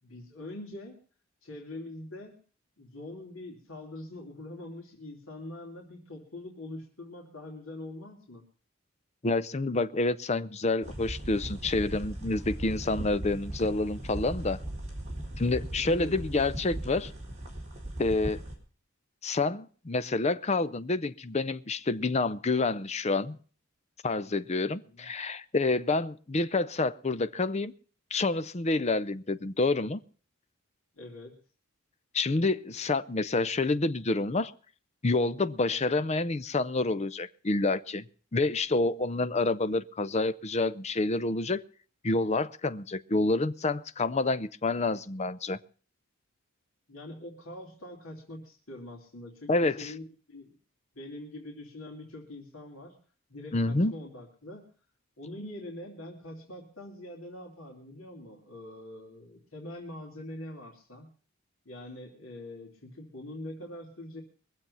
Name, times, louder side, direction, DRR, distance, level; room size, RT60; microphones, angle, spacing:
voice 1, 0.0-1.0 1.4-2.4 2.8-8.4 15.8-16.2 24.6-25.1 30.9-31.3 46.9-50.6 50.9-53.0 53.3-54.7 55.2-61.1 61.6-64.2, left 1 dB, 80° left, 2.9 m, -44 dB
voice 2, 9.2-14.6 15.4-17.1 18.0-18.4 19.2-23.4 24.0-27.7 28.1-30.0 32.1-34.5 35.0-38.0 38.3-41.6 42.0-45.6 49.5-49.9 53.5-53.9, left 3 dB, 30° left, 0.6 m, -28 dB
sound 1, 10.8-18.6, right 1 dB, 35° right, 4.1 m, -38 dB
23.0 x 7.7 x 5.5 m
head